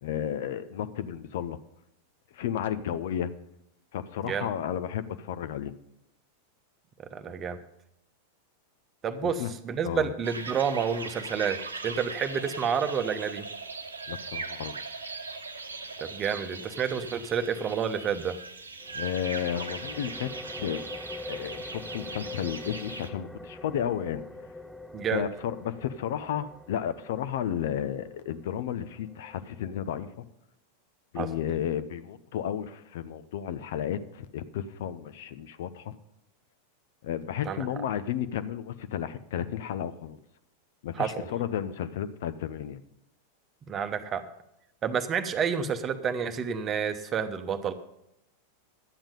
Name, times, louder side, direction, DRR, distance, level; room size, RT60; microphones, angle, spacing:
voice 1, 0.0-1.6 2.3-3.3 3.9-5.7 9.2-9.5 9.8-10.1 14.1-14.7 18.9-20.3 20.6-20.9 21.3-24.2 25.1-30.1 31.1-36.0 37.0-40.2 40.8-42.8, left 9 dB, 55° left, 12 dB, 0.7 m, -32 dB
voice 2, 7.1-7.6 9.0-13.5 16.0-18.4 24.9-25.2 31.2-31.3 37.4-37.7 41.0-41.2 43.7-44.3 44.8-47.7, right 7 dB, 25° right, 9 dB, 1.0 m, -29 dB
sound 1, 10.2-23.1, right 4 dB, 75° right, 1.0 m, -40 dB
sound 2, 18.8-30.2, left 2 dB, ahead, 0.5 m, -44 dB
12.0 x 8.9 x 5.2 m, 0.81 s
figure-of-eight pair, 90°, 0 cm